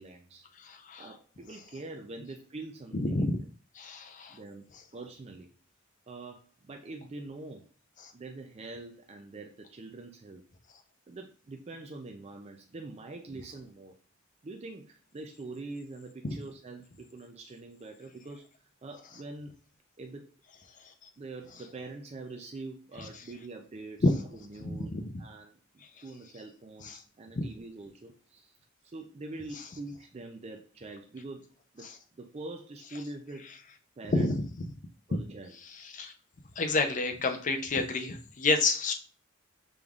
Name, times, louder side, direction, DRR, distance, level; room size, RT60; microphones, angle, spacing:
voice 1, 0.0-0.4 1.0-3.3 4.3-5.5 6.1-7.7 8.1-10.4 11.1-13.9 14.4-18.5 18.8-19.6 20.0-20.3 21.2-24.0 24.3-24.9 25.2-25.6 26.0-28.6 28.8-31.4 31.7-31.9 32.2-33.5 34.0-34.3 35.1-35.5, right 2 dB, 30° right, 3 dB, 0.4 m, -44 dB
voice 2, 0.6-1.1 2.9-3.4 3.8-4.4 8.0-8.1 24.0-24.1 24.9-25.0 26.8-27.0 31.8-31.9 34.1-34.3 35.9-36.1 36.6-39.0, left 3 dB, 40° left, 5 dB, 0.5 m, -28 dB
5.2 x 3.4 x 2.4 m, 0.39 s
head